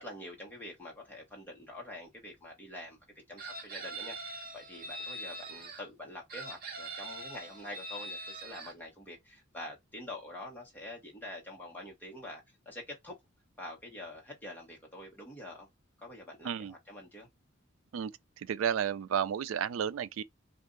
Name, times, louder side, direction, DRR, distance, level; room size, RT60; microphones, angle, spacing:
voice 1, 0.0-3.0 3.3-13.2 13.6-15.7 16.0-17.3, left 1 dB, 10° left, 1.2 m, -46 dB
Chicken rooster, 3.4-5.8 6.3-8.7, right 2 dB, 45° right, 0.9 m, -42 dB
voice 2, 18.4-20.2, right 8 dB, 80° right, 0.3 m, -32 dB
2.7 x 2.5 x 3.8 m
head